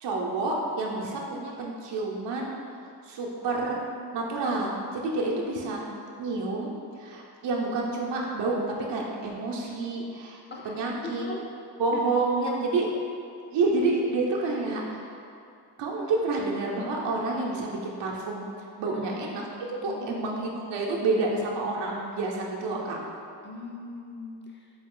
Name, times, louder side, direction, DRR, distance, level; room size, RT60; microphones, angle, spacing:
voice 1, 0.0-2.5 3.0-3.8 4.1-5.8 6.2-6.7 7.0-11.2 11.8-12.9 13.5-15.2 15.8-18.5 18.8-19.4 19.8-23.0, right 3 dB, 70° right, -3 dB, 0.7 m, -29 dB
voice 2, 11.0-11.4 11.9-12.6 18.9-19.2 19.9-20.1 23.4-24.7, left 3 dB, 25° left, -1 dB, 0.6 m, -40 dB
4.7 x 2.3 x 3.6 m, 2.5 s
cardioid pair, 65°, 44 cm